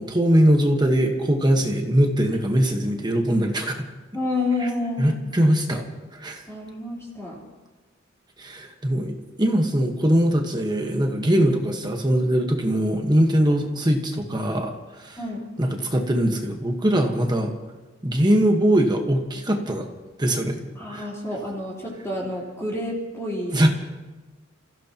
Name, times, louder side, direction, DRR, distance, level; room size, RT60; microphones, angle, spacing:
voice 1, 0.0-3.8 4.6-4.7 5.0-5.8 6.1-6.4 8.4-15.2 15.6-17.5 18.0-19.9 20.2-20.6 20.9-21.1 23.5-23.7, right 1 dB, 20° right, 3 dB, 1.3 m, -21 dB
voice 2, 4.1-5.2 6.5-7.4 15.2-15.5 20.8-23.6, left 2 dB, 15° left, -5 dB, 3.9 m, -29 dB
28.5 x 15.5 x 3.0 m, 1.2 s
head